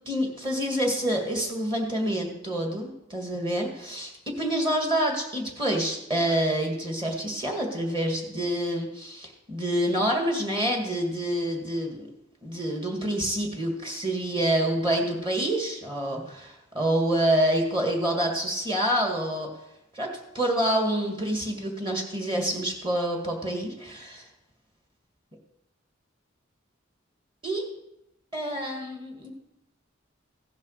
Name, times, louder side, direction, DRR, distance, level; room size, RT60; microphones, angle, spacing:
voice 1, 0.1-12.1 12.4-19.5 19.9-24.2 27.4-27.6 28.3-29.4, right 1 dB, 25° right, 1 dB, 2.0 m, -27 dB
15.5 x 7.3 x 6.6 m, 0.87 s
head